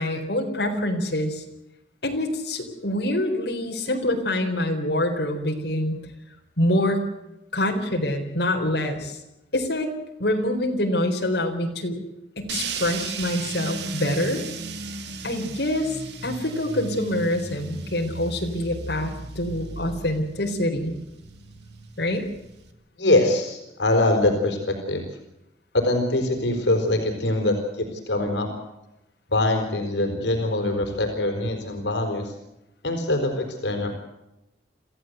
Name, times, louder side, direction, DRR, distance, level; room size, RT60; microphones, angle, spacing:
voice 1, 0.0-1.4 2.0-6.0 6.6-7.0 7.5-9.2 9.5-9.9 10.2-12.0 12.4-14.4 15.2-16.0 16.2-21.0 22.0-22.3, left 1 dB, 70° left, 2 dB, 4.2 m, -25 dB
sound 1, 12.5-22.7, right 4 dB, 75° right, 2.2 m, -36 dB
voice 2, 23.0-25.0 25.7-28.5 29.3-32.3 32.8-34.0, left 2 dB, 85° left, 5 dB, 4.5 m, -23 dB
26.5 x 15.5 x 8.1 m, 0.93 s
head